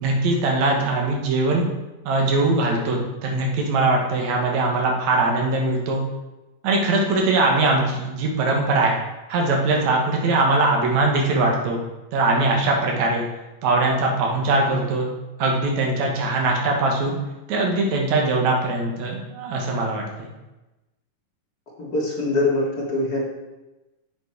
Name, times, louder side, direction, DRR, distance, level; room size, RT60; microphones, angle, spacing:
voice 1, 0.0-1.7 2.0-6.0 6.6-8.9 9.3-11.8 12.1-13.2 13.6-15.1 15.4-17.2 17.5-20.3, right 2 dB, 65° right, 0 dB, 2.4 m, -21 dB
voice 2, 21.8-23.2, left 2 dB, 40° left, -4 dB, 1.5 m, -23 dB
7.4 x 6.1 x 4.5 m, 1.0 s
omnidirectional pair, 3.9 m